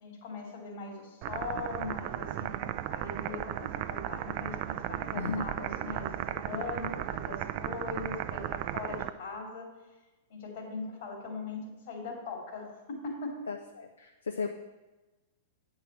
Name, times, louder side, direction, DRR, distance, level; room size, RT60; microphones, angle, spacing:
voice 1, 0.0-9.7 10.3-13.4, left 3 dB, 65° left, 0 dB, 3.0 m, -40 dB
sound 1, 1.2-9.1, right 13 dB, 50° right, 0.4 m, -35 dB
voice 2, 13.5-14.5, left 5 dB, 85° left, 5 dB, 0.5 m, -36 dB
8.9 x 4.8 x 6.0 m, 1.1 s
hypercardioid pair, 105°, 0 cm